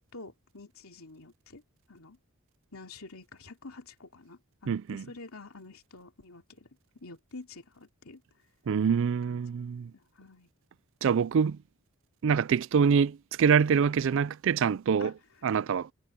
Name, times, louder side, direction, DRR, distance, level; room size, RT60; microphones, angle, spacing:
voice 1, 0.0-1.6 1.9-2.2 2.7-6.7 7.0-8.2 9.3-9.4 9.9-10.5 15.0-15.1, left 3 dB, 80° left, 2.8 m, -48 dB
voice 2, 4.7-5.0 8.7-9.9 11.0-11.6 12.2-15.1 15.4-15.9, right 6 dB, 60° right, 0.4 m, -25 dB
head